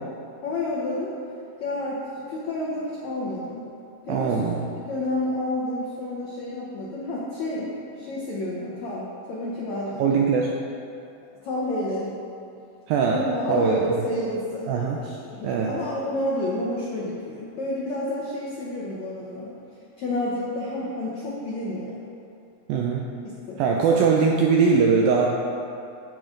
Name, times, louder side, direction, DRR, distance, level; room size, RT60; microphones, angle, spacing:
voice 1, 0.4-1.1 1.6-3.7 4.0-4.4 4.7-10.2 11.4-12.1 13.1-19.5 20.0-22.0 23.2-24.0, left 1 dB, 80° left, -5 dB, 1.6 m, -30 dB
voice 2, 4.1-4.6 10.0-10.5 12.9-13.2 13.5-13.8 14.7-15.0 15.4-15.7 22.7-23.1 23.6-25.3, right 5 dB, 85° right, 0 dB, 2.1 m, -21 dB
15.0 x 5.1 x 3.8 m, 2.6 s
omnidirectional pair, 4.8 m